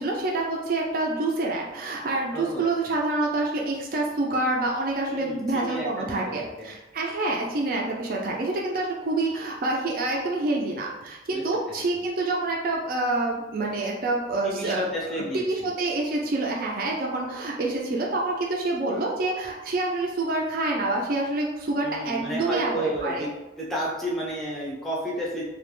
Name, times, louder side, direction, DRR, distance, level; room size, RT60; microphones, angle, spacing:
voice 1, 0.0-14.9 15.3-23.2, right 2 dB, 55° right, -1 dB, 0.4 m, -27 dB
voice 2, 2.3-2.7 5.1-6.3 6.6-6.7 11.3-11.8 14.4-15.4 21.8-23.3 23.6-25.5, right 1 dB, ahead, -5 dB, 0.5 m, -31 dB
2.3 x 2.1 x 3.0 m, 1.0 s
head